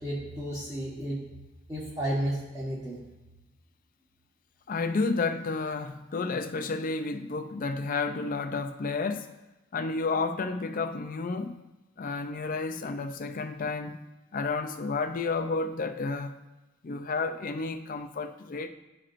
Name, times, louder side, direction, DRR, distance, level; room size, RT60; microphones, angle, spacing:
voice 1, 0.0-1.2 1.7-3.0, right 1 dB, 15° right, 1.1 m, -32 dB
voice 2, 4.7-9.3 9.7-11.6 12.0-14.0 14.3-16.4 16.8-18.7, left 4 dB, 40° left, 0.4 m, -31 dB
11.5 x 4.3 x 2.5 m
head